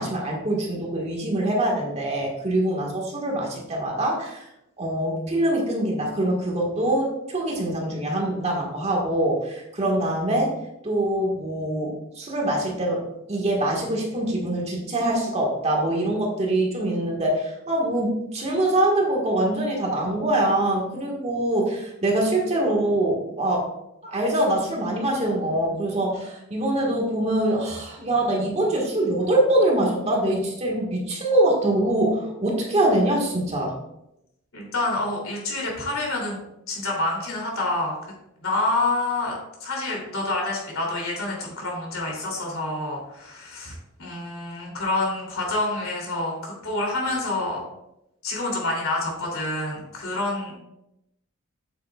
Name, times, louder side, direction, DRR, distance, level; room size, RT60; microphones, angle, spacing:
voice 1, 0.0-4.4 4.8-10.6 10.8-23.7 24.0-33.7, right 1 dB, 30° right, -1 dB, 1.6 m, -24 dB
voice 2, 34.5-36.4 36.7-38.0 38.4-47.6 48.2-50.5, left 2 dB, 75° left, -2 dB, 3.0 m, -27 dB
8.1 x 8.0 x 2.4 m, 0.86 s
head